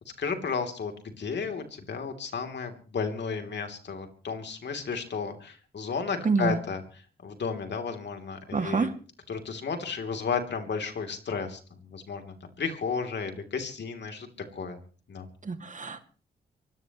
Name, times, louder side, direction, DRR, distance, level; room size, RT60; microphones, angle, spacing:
voice 1, 0.2-8.9 9.3-14.8 15.1-15.3, left 5 dB, 65° left, 5 dB, 3.2 m, -33 dB
voice 2, 6.2-6.6 8.5-8.9 15.4-16.0, right 4 dB, 40° right, 7 dB, 2.3 m, -27 dB
24.0 x 17.0 x 3.1 m, 0.39 s
cardioid pair, 60°, 19 cm